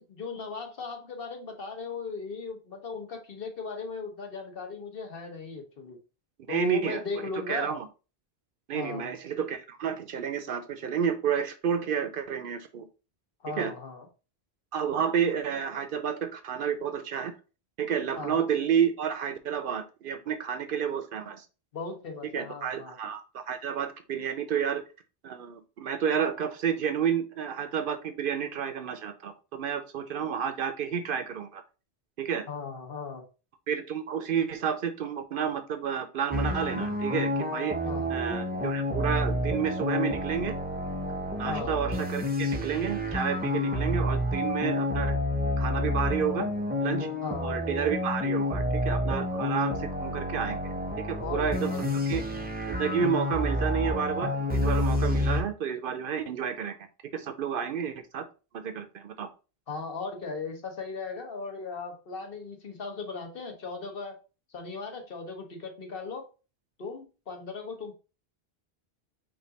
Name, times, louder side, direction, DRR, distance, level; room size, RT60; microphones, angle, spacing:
voice 1, 0.0-6.0 6.5-7.8 8.7-9.2 13.4-14.1 18.2-18.5 21.7-23.0 32.5-33.2 37.8-38.1 41.4-41.8 47.2-47.6 51.2-52.0 59.7-64.2 64.5-66.3 66.8-67.9, left 4 dB, 65° left, 4 dB, 1.2 m, -37 dB
voice 2, 6.5-7.9 8.7-12.9 13.6-13.7 14.7-17.3 17.8-21.5 22.3-24.8 25.2-31.6 32.2-32.4 33.7-37.8 38.1-40.6 41.4-45.2 45.6-46.5 46.8-47.1 47.4-50.7 51.1-52.2 52.7-56.9 57.1-58.2 58.5-59.3, right 7 dB, 65° right, 9 dB, 0.7 m, -30 dB
sound 1, 36.3-55.4, left 1 dB, 10° right, 0.5 m, -29 dB
5.2 x 2.5 x 3.9 m, 0.33 s
omnidirectional pair, 1.1 m